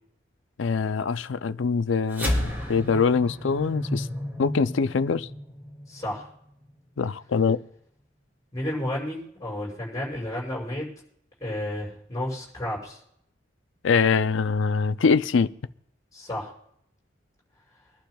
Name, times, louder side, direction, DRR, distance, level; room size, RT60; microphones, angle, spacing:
voice 1, 0.6-4.1 4.4-5.3 7.0-7.6 13.8-15.5, left 5 dB, 80° left, 0.5 m, -23 dB
sound 1, 2.1-6.7, left 1 dB, 10° right, 3.6 m, -32 dB
voice 2, 5.9-6.3 8.5-10.8 11.4-13.0 16.1-16.5, left 1 dB, 20° left, 6.4 m, -32 dB
25.0 x 11.5 x 2.3 m
head